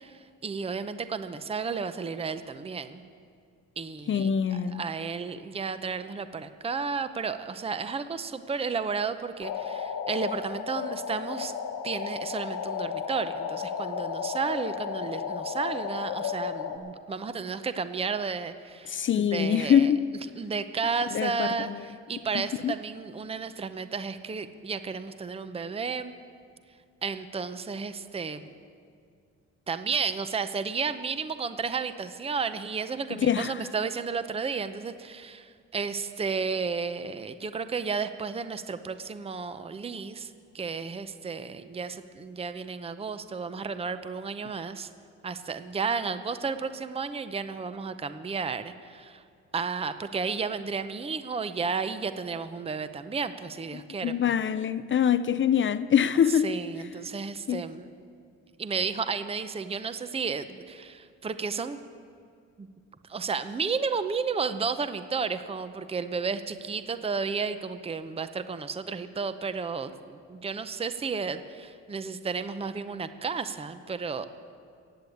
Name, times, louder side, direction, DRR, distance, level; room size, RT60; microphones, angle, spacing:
voice 1, 0.0-3.0 3.8-4.3 4.7-11.5 11.8-19.9 20.4-26.1 27.0-28.5 29.7-44.9 45.2-49.2 49.5-54.3 56.3-57.9 58.6-61.8 62.6-62.7 63.1-74.3, right 5 dB, 20° right, 0.7 m, -32 dB
voice 2, 4.1-4.8 18.9-20.0 21.1-21.8 22.6-22.7 33.1-33.6 53.7-56.5 57.5-57.6, left 8 dB, 40° left, 0.5 m, -24 dB
sound 1, 9.4-16.8, left 7 dB, 80° left, 1.4 m, -33 dB
16.0 x 8.5 x 8.5 m
cardioid pair, 90°, 30 cm